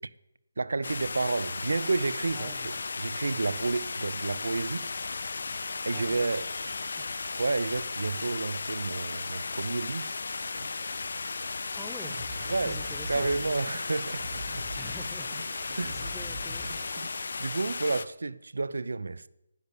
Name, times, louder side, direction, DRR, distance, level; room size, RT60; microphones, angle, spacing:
voice 1, 0.6-4.9 5.8-6.5 7.4-10.1 10.5-11.0 12.5-12.8 13.1-14.7 15.7-16.1 17.4-19.3, right 3 dB, 75° right, 0.6 m, -31 dB
sound 1, 0.8-18.1, left 4 dB, 55° left, 0.6 m, -35 dB
voice 2, 2.3-2.9 5.9-6.2 6.7-7.1 11.7-12.2 12.6-13.4 14.7-16.9, left 2 dB, ahead, 0.5 m, -48 dB
sound 2, 6.0-10.7, right 2 dB, 45° right, 3.3 m, -55 dB
sound 3, 11.9-17.0, right 1 dB, 15° right, 2.2 m, -42 dB
10.5 x 10.5 x 8.3 m
hypercardioid pair, 180°, 0 cm